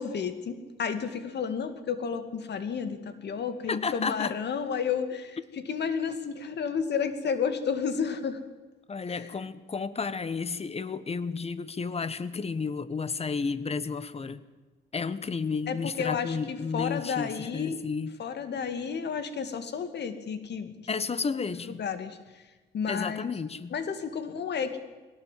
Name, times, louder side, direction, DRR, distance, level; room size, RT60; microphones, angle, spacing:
voice 1, 0.0-8.4 9.1-9.3 15.7-17.8 18.2-20.7 21.6-22.2 22.7-23.3 23.7-24.8, left 6 dB, 60° left, 9 dB, 2.3 m, -31 dB
voice 2, 3.7-4.3 8.9-14.4 14.9-18.1 20.9-21.8 22.9-23.8, left 5 dB, 30° left, 15 dB, 1.3 m, -32 dB
21.0 x 17.5 x 7.6 m, 1.3 s
cardioid pair, 90°, 20 cm